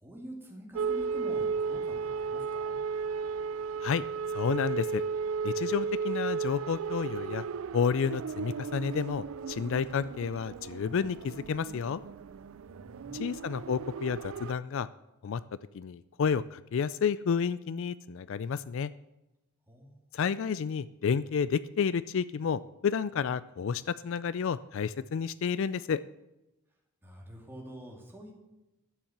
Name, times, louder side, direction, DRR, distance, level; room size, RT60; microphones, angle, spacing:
voice 1, 0.0-2.8 12.7-13.2 19.7-20.0 27.0-28.3, equal, 10° right, -1 dB, 2.6 m, -46 dB
sound 1, 0.8-14.5, right 5 dB, 65° right, 0.4 m, -35 dB
voice 2, 4.3-5.0 5.4-7.4 7.7-12.0 13.1-14.9 15.2-15.4 15.7-18.9 20.1-26.0, left 6 dB, 60° left, 16 dB, 0.3 m, -30 dB
12.0 x 7.2 x 7.4 m, 0.96 s
head